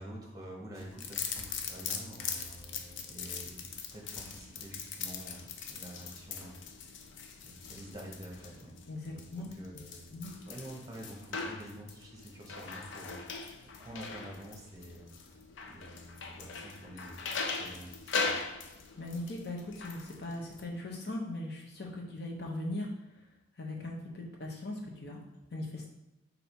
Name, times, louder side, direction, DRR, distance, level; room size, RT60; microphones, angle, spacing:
voice 1, 0.0-3.7 3.9-6.6 7.4-8.7 9.1-9.2 9.6-18.4, right 1 dB, 20° right, -2 dB, 0.8 m, -48 dB
sound 1, 0.8-20.6, left 5 dB, 70° left, 0.4 m, -41 dB
voice 2, 8.9-9.5 10.1-10.3 19.0-22.9 23.6-25.2 25.5-25.9, left 1 dB, 55° left, -1 dB, 0.8 m, -39 dB
3.3 x 2.7 x 4.3 m, 0.96 s
head